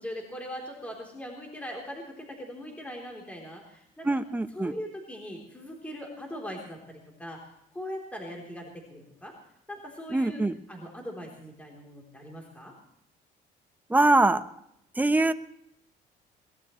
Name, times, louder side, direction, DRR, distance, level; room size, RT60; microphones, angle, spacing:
voice 1, 0.0-4.1 4.5-7.4 7.7-9.3 9.7-10.4 10.7-12.7, equal, 10° left, 0 dB, 3.6 m, -40 dB
voice 2, 4.0-4.7 10.1-10.5 13.9-14.4 15.0-15.3, right 2 dB, 10° right, 8 dB, 1.0 m, -23 dB
22.5 x 19.5 x 3.2 m, 0.75 s
cardioid pair, 110°, 17 cm